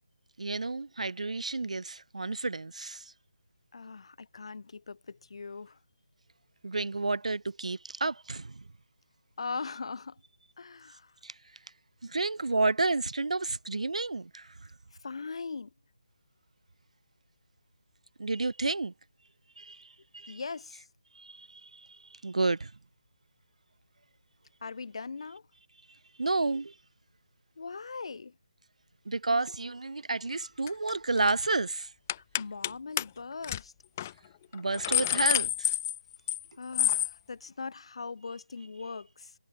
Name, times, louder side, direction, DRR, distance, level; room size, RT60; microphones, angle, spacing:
voice 1, 0.4-3.1 6.6-8.5 11.2-11.3 12.0-14.5 18.2-18.9 19.6-20.4 21.2-22.7 26.2-26.7 29.1-31.9 34.5-35.7, right 3 dB, 80° right, 0.4 m, -31 dB
voice 2, 3.7-5.8 9.4-10.2 10.6-11.1 15.0-15.7 20.3-20.9 24.6-25.4 27.6-28.3 32.1-33.7 36.6-39.3, left 4 dB, 55° left, 1.3 m, -40 dB
sound 1, 30.7-30.9 31.2-31.4 32.1-32.7 33.0-33.1 33.4-33.6 34.0-34.1 34.5-36.4 36.7-37.1, left 12 dB, 20° left, 0.5 m, -28 dB
figure-of-eight pair, 160°, 4 cm